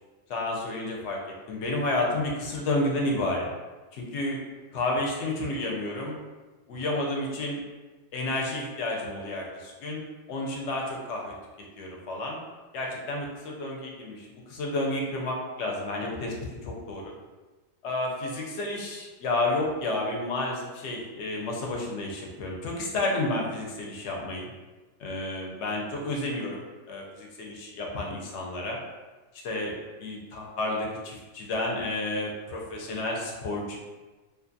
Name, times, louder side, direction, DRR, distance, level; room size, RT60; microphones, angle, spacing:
voice 1, 0.3-1.2 1.5-3.5 3.9-4.4 4.7-6.2 6.7-7.6 8.1-10.0 10.3-11.3 11.8-12.4 12.7-16.3 16.6-17.1 17.8-24.5 25.0-26.6 26.9-27.0 27.4-28.8 29.4-29.7 30.0-33.8, left 2 dB, 65° left, -1 dB, 0.8 m, -31 dB
2.5 x 2.4 x 2.5 m, 1.2 s
omnidirectional pair, 1.4 m